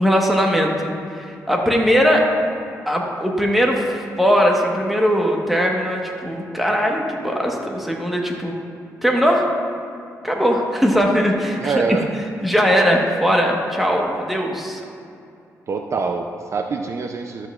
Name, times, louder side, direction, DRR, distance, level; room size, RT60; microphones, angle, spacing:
voice 1, 0.0-2.3 2.9-8.5 9.0-9.5 10.2-11.7 12.4-14.8, equal, ahead, 0 dB, 1.2 m, -19 dB
voice 2, 11.6-12.1 15.7-17.5, right 4 dB, 50° right, 4 dB, 0.5 m, -24 dB
12.5 x 8.0 x 2.4 m, 2.6 s
cardioid pair, 95°, 6 cm